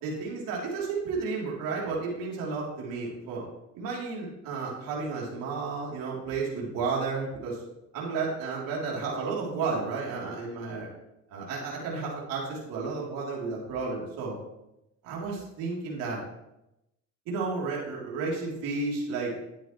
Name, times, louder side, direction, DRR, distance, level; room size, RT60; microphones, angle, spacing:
voice 1, 0.0-3.4 3.7-7.6 7.9-10.9 11.3-14.4 15.0-16.2 17.3-19.3, right 4 dB, 75° right, -4 dB, 3.4 m, -32 dB
11.0 x 9.1 x 3.2 m, 0.87 s
supercardioid pair, 90°, 34 cm